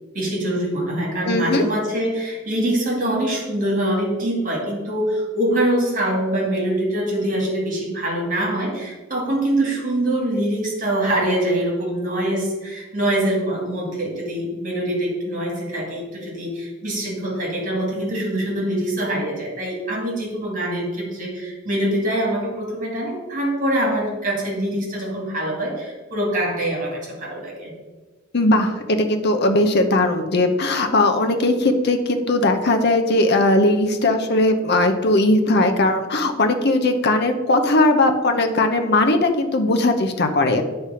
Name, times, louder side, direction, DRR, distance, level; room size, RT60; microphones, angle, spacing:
voice 1, 0.1-27.7, right 1 dB, 40° right, -2 dB, 2.2 m, -24 dB
voice 2, 1.2-1.6 28.3-40.6, left 2 dB, 50° left, 6 dB, 0.8 m, -19 dB
9.8 x 3.3 x 5.6 m, 1.2 s
head